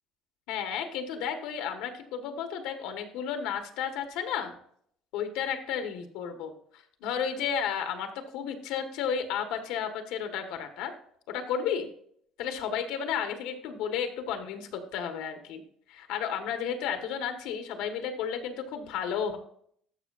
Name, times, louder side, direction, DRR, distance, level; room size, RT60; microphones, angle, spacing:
voice 1, 0.5-4.5 5.1-8.1 8.3-10.9 11.3-11.9 12.4-15.6 15.9-19.4, left 7 dB, 80° left, 7 dB, 1.3 m, -32 dB
13.0 x 6.2 x 2.5 m, 0.63 s
cardioid pair, 160°, 0 cm